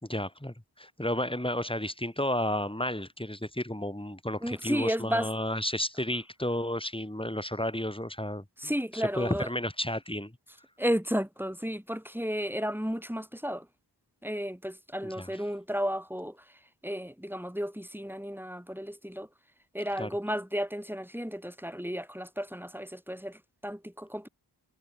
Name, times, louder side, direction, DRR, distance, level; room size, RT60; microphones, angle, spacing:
voice 1, 0.0-8.4 8.9-10.3 15.0-15.3 20.0-20.1, left 1 dB, 10° left, 4.5 m, -32 dB
voice 2, 4.4-5.3 8.6-9.5 10.8-13.7 14.2-19.3 19.7-24.3, equal, 5° right, 7.7 m, -33 dB
wide cardioid pair, 45°, 43 cm